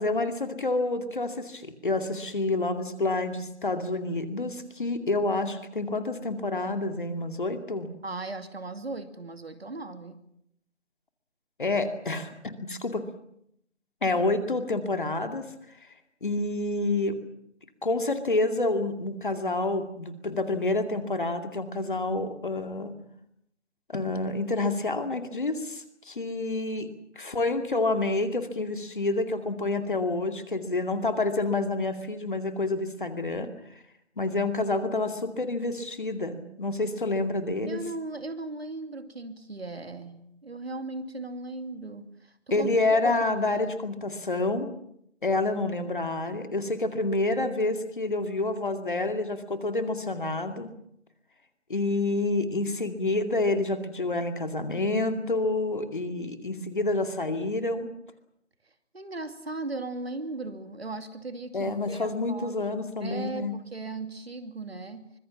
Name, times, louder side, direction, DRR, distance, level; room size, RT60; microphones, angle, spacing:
voice 1, 0.0-7.9 11.6-13.0 14.0-15.5 16.2-17.2 17.8-22.9 23.9-26.9 27.2-33.5 34.2-37.8 42.5-44.7 45.2-50.7 51.7-57.9 61.5-63.5, left 2 dB, 40° left, 8 dB, 2.4 m, -28 dB
voice 2, 8.0-10.2 37.7-42.3 42.6-43.4 58.9-62.6 63.0-65.2, right 2 dB, 55° right, 9 dB, 2.7 m, -37 dB
24.5 x 21.5 x 7.3 m, 0.74 s
figure-of-eight pair, 165°, 37 cm